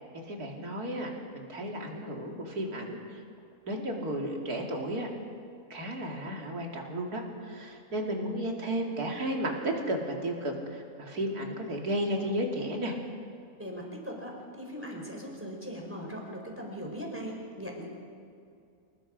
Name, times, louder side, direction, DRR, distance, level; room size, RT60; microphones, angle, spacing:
voice 1, 0.2-3.2 3.7-5.1 5.7-13.0, right 1 dB, 80° right, 0 dB, 3.0 m, -33 dB
voice 2, 13.6-17.8, equal, 10° right, -1 dB, 4.3 m, -39 dB
26.5 x 19.5 x 5.1 m, 2.4 s
omnidirectional pair, 1.6 m